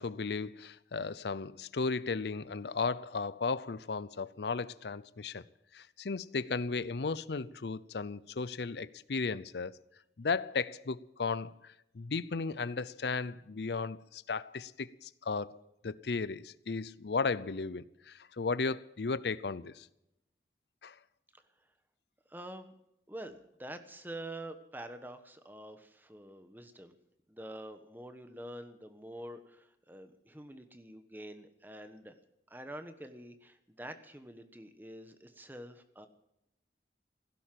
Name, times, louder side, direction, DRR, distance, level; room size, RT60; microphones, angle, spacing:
voice 1, 0.0-5.4 5.7-9.7 10.2-15.6 15.8-19.9 20.8-20.9, left 4 dB, 75° left, 0.6 m, -35 dB
voice 2, 22.3-22.7 23.1-26.9 27.3-32.1 32.5-36.1, right 1 dB, 10° right, 1.2 m, -46 dB
17.0 x 11.0 x 7.6 m
head